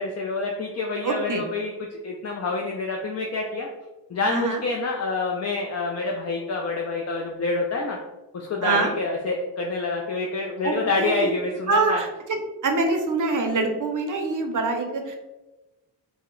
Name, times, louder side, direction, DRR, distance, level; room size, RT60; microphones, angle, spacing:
voice 1, 0.0-3.7 4.1-8.0 8.3-12.0, left 3 dB, 40° left, 0 dB, 0.4 m, -27 dB
voice 2, 1.0-1.4 4.3-4.6 8.6-8.9 10.6-11.3 11.7-12.4 12.6-15.2, right 3 dB, 45° right, 4 dB, 0.6 m, -25 dB
2.8 x 2.1 x 3.7 m, 1.1 s
cardioid pair, 100°, 44 cm